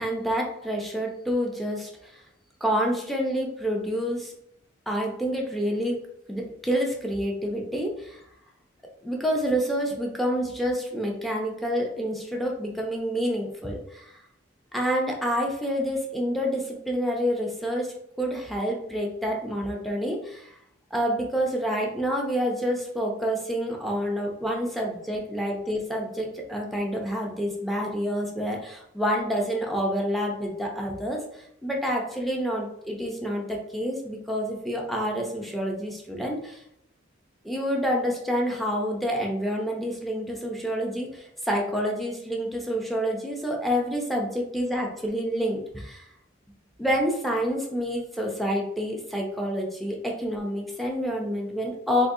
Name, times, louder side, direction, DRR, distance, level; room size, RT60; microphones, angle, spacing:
voice 1, 0.0-2.1 2.6-4.3 4.9-6.0 6.3-8.2 9.0-14.1 14.7-20.5 20.9-36.6 37.4-46.0 46.8-52.1, equal, ahead, 0 dB, 0.6 m, -28 dB
4.0 x 2.6 x 2.6 m, 0.73 s
head